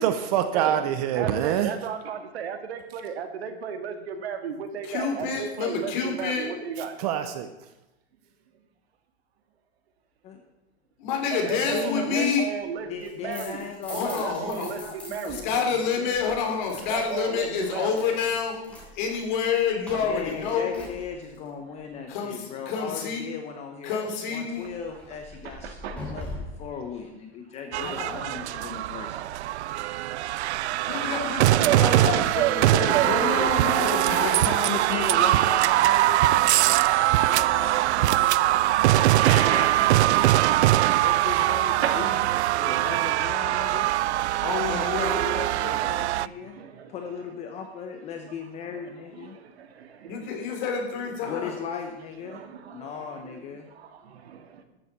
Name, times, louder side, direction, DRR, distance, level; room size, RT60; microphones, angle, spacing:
voice 1, 0.0-1.7 7.0-7.5, right 10 dB, 35° right, 9 dB, 0.8 m, -25 dB
voice 2, 1.1-7.0 11.3-13.6 13.9-15.6 16.9-17.9 25.4-26.1 28.3-28.5 29.0-29.3 29.6-30.2 36.1-36.2 36.5-36.6 38.3-38.4 39.1-39.9 41.8-42.2 44.0-44.5 45.8-45.9 46.4-46.9 49.2-50.3 52.3-52.9 53.8-54.6, right 7 dB, 70° right, 8 dB, 2.0 m, -35 dB
voice 3, 4.8-6.5 11.0-12.4 13.9-14.7 15.2-18.6 18.9-20.8 22.1-23.2 23.8-24.7 27.8-28.2 30.9-34.5 44.4-45.2 50.1-51.5, left 6 dB, 45° left, 2 dB, 3.2 m, -28 dB
voice 4, 11.7-12.4 12.9-16.2 19.9-24.0 24.3-29.3 29.8-30.0 33.0-36.8 37.2-40.4 41.0-42.3 42.6-43.9 44.7-46.6 46.9-49.4 51.2-52.4 52.7-53.7, left 6 dB, 20° left, 4 dB, 0.9 m, -36 dB
sound 1, 12.9-15.6 15.9-21.5 24.5-26.7, left 1 dB, 5° left, 3.1 m, -43 dB
sound 2, 27.7-46.3, right 15 dB, 85° right, 0.5 m, -22 dB
13.0 x 7.5 x 7.4 m, 0.98 s
supercardioid pair, 165°, 33 cm